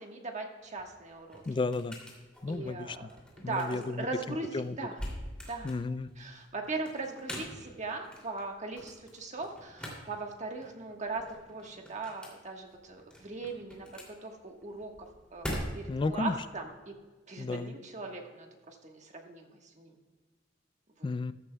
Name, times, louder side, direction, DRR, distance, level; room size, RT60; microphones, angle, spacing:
voice 1, 0.0-1.4 2.5-3.1 3.4-5.0 5.5-5.8 6.2-17.0 17.3-20.0 21.0-21.1, right 3 dB, 40° right, 2 dB, 1.3 m, -39 dB
sound 1, 0.6-16.1, equal, 5° left, 2.6 m, -45 dB
voice 2, 1.5-2.0 2.4-3.1 3.4-4.1 4.5-4.7 5.6-6.1 15.9-16.3 17.4-17.7 21.0-21.3, left 3 dB, 25° left, 15 dB, 0.3 m, -32 dB
14.5 x 12.0 x 2.3 m, 1.3 s
head